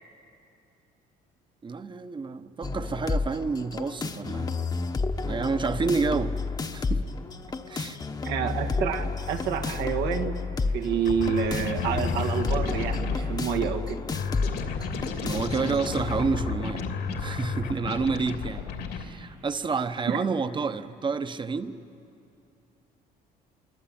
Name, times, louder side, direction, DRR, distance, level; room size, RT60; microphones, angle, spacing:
voice 1, 1.6-4.5 5.2-6.4 6.7-7.0 7.7-8.0 15.2-16.9 17.2-18.6 18.9-21.8, right 4 dB, 30° right, 11 dB, 1.1 m, -29 dB
sound 1, 2.6-16.6, left 4 dB, 25° left, 1.1 m, -31 dB
voice 2, 8.2-10.4 10.7-14.0 20.1-20.2, right 7 dB, 80° right, 5 dB, 1.8 m, -28 dB
sound 2, 11.0-13.2 14.1-19.0, left 5 dB, 80° left, 3.0 m, -32 dB
26.5 x 24.0 x 8.8 m, 2.7 s
cardioid pair, 110°, 17 cm